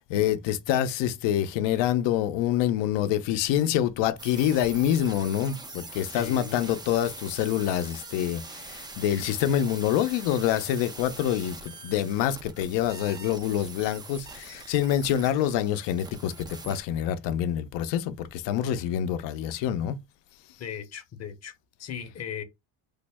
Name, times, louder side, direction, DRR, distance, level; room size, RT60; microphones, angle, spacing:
voice 1, 0.1-20.0, left 10 dB, 75° left, 0.7 m, -26 dB
sound 1, 4.2-16.8, right 3 dB, 10° right, 0.3 m, -43 dB
voice 2, 6.1-6.6 20.6-21.5 21.8-22.4, left 8 dB, 35° left, 0.8 m, -37 dB
3.4 x 2.1 x 3.4 m
cardioid pair, 105°, 43 cm